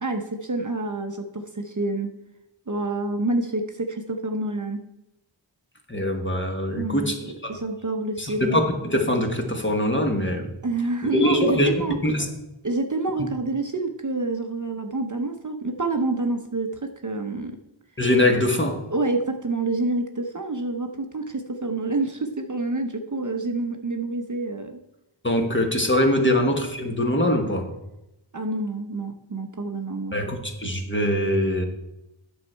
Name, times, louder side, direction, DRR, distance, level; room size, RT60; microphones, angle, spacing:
voice 1, 0.0-2.1 2.7-4.8 6.8-8.6 10.6-12.0 12.6-17.6 18.9-24.8 28.3-30.1, right 2 dB, 40° right, 5 dB, 0.8 m, -28 dB
voice 2, 5.9-7.2 8.2-10.5 11.2-12.3 18.0-18.8 25.2-27.7 30.1-31.6, left 1 dB, 25° left, 3 dB, 1.3 m, -23 dB
9.2 x 6.4 x 4.5 m, 0.90 s
wide cardioid pair, 60°, 49 cm